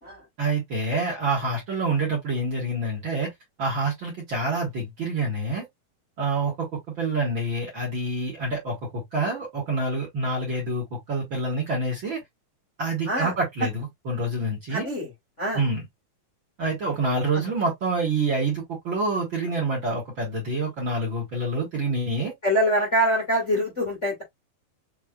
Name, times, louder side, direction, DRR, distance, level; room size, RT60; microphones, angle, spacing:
voice 1, 0.4-3.3 3.6-5.6 6.2-12.2 12.8-14.9 15.5-15.8 16.6-22.3, right 2 dB, 45° right, 1.9 m, -27 dB
voice 2, 14.7-15.1 15.4-15.6 17.3-17.4 22.4-24.2, equal, 25° left, 1.6 m, -24 dB
6.3 x 3.2 x 2.3 m
omnidirectional pair, 4.3 m